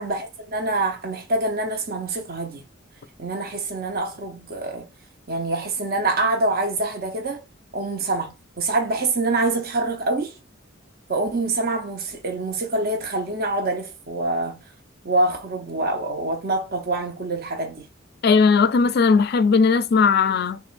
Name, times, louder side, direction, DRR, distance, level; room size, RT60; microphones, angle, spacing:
voice 1, 0.0-2.6 3.2-4.9 5.3-7.4 7.7-10.3 11.1-14.6 15.0-17.8, right 2 dB, 50° right, 0.7 m, -25 dB
voice 2, 18.2-20.6, left 5 dB, 55° left, 0.4 m, -18 dB
5.9 x 2.3 x 2.5 m
head